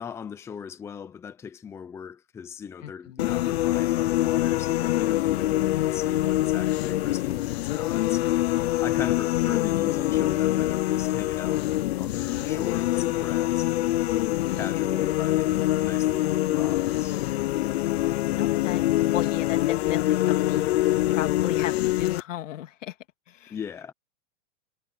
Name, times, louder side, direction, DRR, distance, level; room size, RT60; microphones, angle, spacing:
voice 1, 0.0-8.4 8.8-11.6 12.0-13.9 14.5-17.2 23.5-23.9, left 7 dB, 5° left, 0.8 m, -39 dB
voice 2, 2.8-3.4 18.4-18.8 19.1-23.0 23.3-23.6, left 12 dB, 85° left, 2.6 m, -35 dB
sound 1, 3.2-22.2, left 15 dB, 55° left, 0.6 m, -25 dB
supercardioid pair, 170°, 37 cm